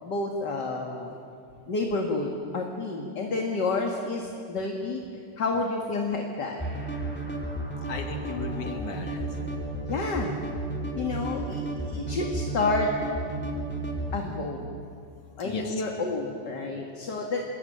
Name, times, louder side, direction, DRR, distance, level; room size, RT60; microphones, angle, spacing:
voice 1, 0.0-1.1 1.7-5.0 5.4-6.6 9.8-10.4 10.9-11.6 11.9-12.9 14.1-14.7 15.4-17.5, left 3 dB, 40° left, 1 dB, 2.3 m, -29 dB
sound 1, 6.6-14.2, right 2 dB, 5° left, 3.2 m, -33 dB
voice 2, 7.9-9.4 13.9-14.0 15.4-15.8 16.7-16.8, left 5 dB, 85° left, 3 dB, 4.0 m, -37 dB
29.0 x 21.5 x 9.1 m, 2.4 s
omnidirectional pair, 3.3 m